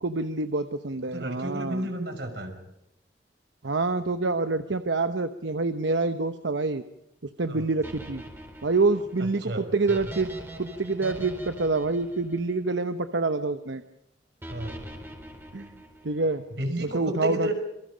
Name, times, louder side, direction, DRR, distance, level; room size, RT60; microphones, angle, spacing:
voice 1, 0.0-1.9 3.6-6.8 7.4-8.2 8.6-10.3 10.6-13.8 15.5-15.7 16.0-16.4 16.8-17.5, right 3 dB, 90° right, 9 dB, 1.0 m, -27 dB
voice 2, 1.1-2.5 7.5-7.7 9.4-9.7 14.5-14.8 16.6-17.5, right 1 dB, 70° right, 5 dB, 5.8 m, -31 dB
sound 1, 7.8-13.1 14.4-16.3, right 1 dB, 15° right, 4.4 m, -42 dB
27.0 x 24.0 x 5.2 m, 0.82 s
head